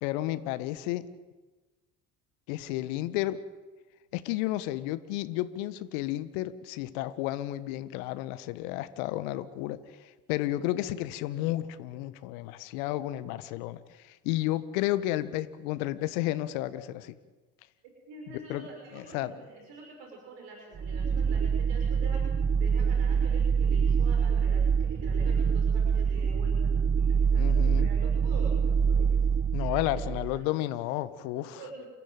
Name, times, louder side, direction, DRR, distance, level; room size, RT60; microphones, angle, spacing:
voice 1, 0.0-1.0 2.5-3.4 4.1-9.8 10.3-17.1 18.3-18.7 18.9-19.3 27.4-27.9 29.5-31.6, left 15 dB, 65° left, 13 dB, 1.4 m, -32 dB
voice 2, 18.1-22.2 22.5-29.2 29.8-30.0 30.3-30.4 31.5-31.9, right 3 dB, 65° right, 0 dB, 6.0 m, -46 dB
sound 1, 20.8-30.4, right 6 dB, 30° right, 1.0 m, -25 dB
29.0 x 15.0 x 9.2 m, 1.2 s
figure-of-eight pair, 60°, 45 cm